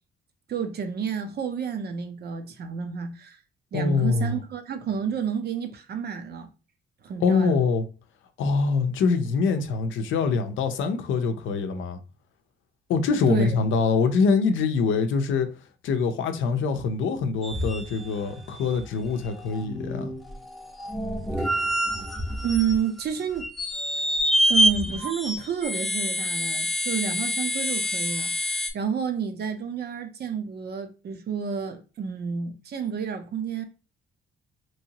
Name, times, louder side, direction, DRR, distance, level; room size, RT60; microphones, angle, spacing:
voice 1, 0.5-3.4 3.7-6.5 7.0-7.6 13.3-13.5 21.4-21.8 22.4-23.5 24.5-33.6, right 7 dB, 55° right, 0.7 m, -30 dB
voice 2, 3.7-4.4 7.2-7.8 8.4-12.0 12.9-15.5 15.8-20.1, left 5 dB, 80° left, 0.6 m, -24 dB
sound 1, 17.4-18.3 18.8-18.9 19.3-23.0 23.4-28.7, equal, ahead, 0.6 m, -26 dB
3.0 x 2.8 x 2.8 m
cardioid pair, 90°, 20 cm